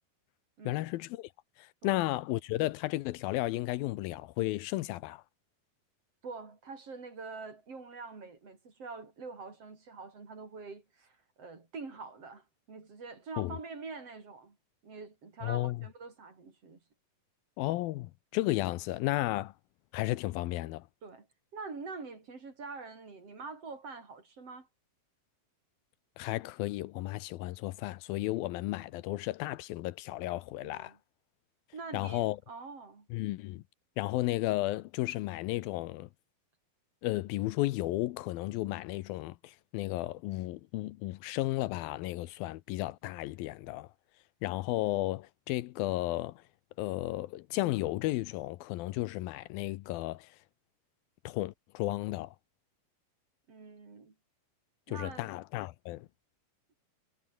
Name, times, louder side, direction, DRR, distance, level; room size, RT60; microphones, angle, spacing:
voice 1, 0.7-1.3 1.6-5.2 13.4-13.6 15.4-15.9 17.6-19.5 19.9-20.9 26.2-30.9 31.9-32.4 33.1-33.6 34.0-36.1 37.0-43.9 44.4-46.4 46.8-50.4 51.2-52.4 54.9-56.1, left 17 dB, 85° left, 2.5 m, -33 dB
voice 2, 6.2-14.6 14.8-16.8 21.0-21.3 21.5-24.7 30.6-31.0 31.7-33.1 53.5-54.1 54.9-55.3, right 4 dB, 40° right, 5.1 m, -45 dB
omnidirectional pair, 4.3 m